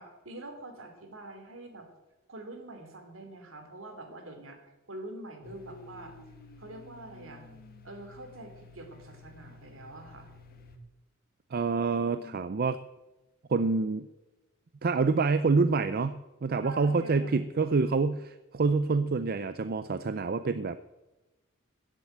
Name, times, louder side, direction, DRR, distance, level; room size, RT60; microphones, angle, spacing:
voice 1, 0.0-1.9 2.3-4.6 4.9-6.1 6.6-7.4 7.8-10.3 12.1-12.3 16.6-17.4, right 2 dB, 70° right, 5 dB, 3.0 m, -45 dB
Domestic sounds home sounds, 5.4-10.8, left 3 dB, 45° left, 1.7 m, -51 dB
voice 2, 11.5-12.8 13.5-14.1 14.8-20.8, right 4 dB, 45° right, 12 dB, 0.5 m, -27 dB
14.5 x 7.7 x 9.1 m, 1.1 s
head